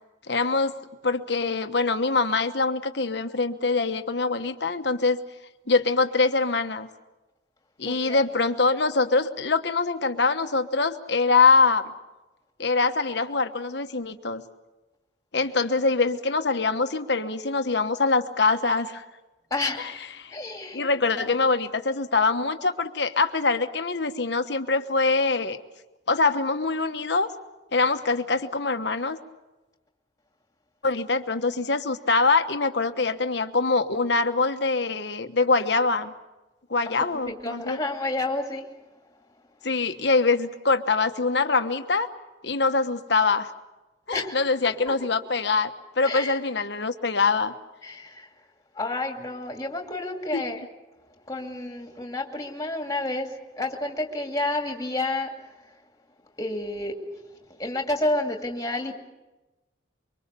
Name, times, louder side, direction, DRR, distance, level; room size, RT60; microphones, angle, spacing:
voice 1, 0.3-0.7 1.0-5.2 5.7-6.9 7.8-11.9 12.6-14.4 15.3-19.0 19.8-19.9 20.2-20.4 20.7-25.6 26.1-27.3 27.7-29.2 30.8-36.1 36.7-37.8 39.6-42.1 42.4-43.5 44.1-47.5 50.3-50.4, left 4 dB, 60° left, 8 dB, 1.2 m, -24 dB
voice 2, 7.9-8.2 19.5-20.0 20.3-20.9 21.1-21.2 36.9-37.0 37.2-38.6 44.1-44.4 44.9-45.0 46.0-46.4 47.8-48.3 48.8-50.6 51.3-53.3 53.6-55.3 56.4-56.9 57.6-59.0, left 2 dB, 20° left, 2 dB, 2.5 m, -30 dB
24.5 x 24.0 x 6.9 m, 1.1 s
head